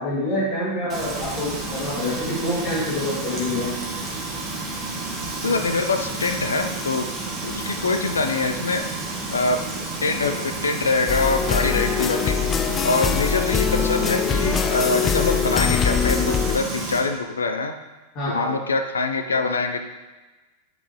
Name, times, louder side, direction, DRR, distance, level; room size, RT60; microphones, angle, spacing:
voice 1, 0.0-3.8 18.1-18.6, left 1 dB, 40° left, -7 dB, 2.6 m, -26 dB
Frying (food), 0.9-17.0, right 2 dB, 25° right, 1.9 m, -31 dB
voice 2, 5.4-7.1 7.4-8.8 9.3-9.6 10.0-12.4 12.8-17.7 18.3-19.8, left 3 dB, 75° left, 6 dB, 0.5 m, -24 dB
sound 1, 11.1-16.6, left 7 dB, 25° left, 0.3 m, -23 dB
8.8 x 5.9 x 3.2 m, 1.2 s
figure-of-eight pair, 90°, 0 cm